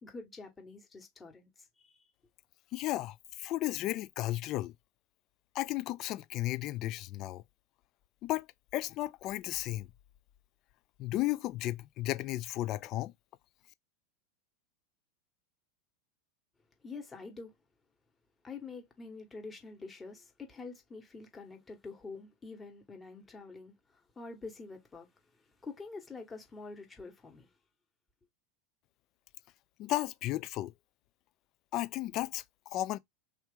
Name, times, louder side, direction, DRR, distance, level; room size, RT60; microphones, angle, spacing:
voice 1, 0.0-2.1 16.8-17.6 18.4-27.5, left 4 dB, 20° left, 1.4 m, -47 dB
voice 2, 2.7-4.7 5.5-7.4 8.2-8.5 8.7-9.9 11.0-13.1 29.8-30.7 31.7-33.0, left 16 dB, 45° left, 0.4 m, -34 dB
3.2 x 2.8 x 3.6 m
hypercardioid pair, 90°, 0 cm